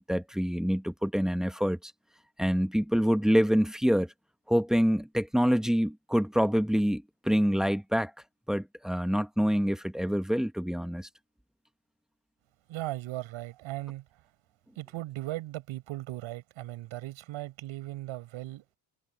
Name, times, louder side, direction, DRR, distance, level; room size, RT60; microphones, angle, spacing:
voice 1, 0.0-1.8 2.4-4.1 4.5-8.1 8.5-11.1, equal, ahead, 0.8 m, -26 dB
voice 2, 12.7-14.3 14.7-18.6, right 16 dB, 75° right, 6.8 m, -38 dB
cardioid pair, 180°, 48 cm